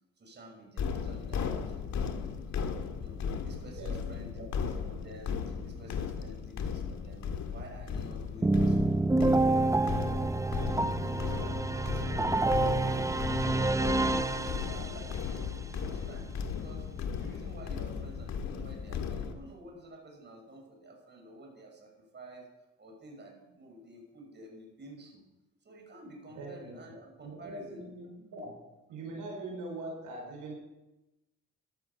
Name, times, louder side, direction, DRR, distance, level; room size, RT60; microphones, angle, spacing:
voice 1, 0.2-9.1 11.0-12.4 12.8-15.3 15.6-16.9 17.2-22.5 22.8-25.2 25.6-27.9, right 1 dB, 35° right, 0 dB, 5.7 m, -50 dB
sound 1, 0.8-19.3, left 6 dB, 65° left, 1.8 m, -36 dB
voice 2, 3.8-4.2 10.8-11.1 26.3-26.7 27.2-28.5 28.9-30.5, right 2 dB, 85° right, 0 dB, 5.3 m, -42 dB
sound 2, 8.4-15.2, right 2 dB, 10° right, 0.7 m, -28 dB
14.5 x 12.5 x 5.5 m, 1.0 s
cardioid pair, 90°, 30 cm